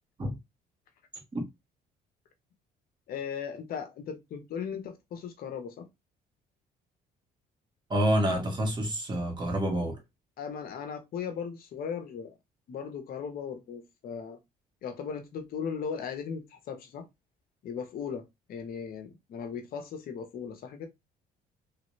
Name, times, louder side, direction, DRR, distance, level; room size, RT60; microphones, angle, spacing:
voice 1, 3.1-5.8 10.4-12.3 12.7-14.4 14.8-17.0 17.6-18.2 18.5-20.9, left 7 dB, 60° left, 0.9 m, -37 dB
voice 2, 7.9-10.0, equal, 25° right, 1.6 m, -28 dB
3.2 x 3.0 x 3.0 m
cardioid pair, 110°, 17 cm